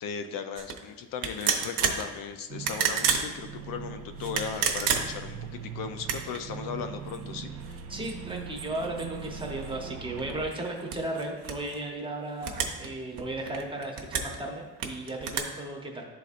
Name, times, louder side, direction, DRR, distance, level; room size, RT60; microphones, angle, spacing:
voice 1, 0.0-7.8, left 6 dB, 75° left, 8 dB, 0.6 m, -37 dB
sound 1, 0.6-0.8 1.2-2.0 2.5-3.3 4.2-5.3 6.0-6.4 7.1-7.2 7.6-9.7 10.2-11.8 12.4-12.9 13.2-14.4 14.8-15.4, right 7 dB, 80° right, 0.9 m, -30 dB
sound 2, 2.5-10.5, right 6 dB, 45° right, 0.4 m, -41 dB
voice 2, 7.9-16.0, right 2 dB, 15° right, 1 dB, 0.8 m, -35 dB
11.0 x 4.1 x 2.5 m, 1.2 s
cardioid pair, 155°, 34 cm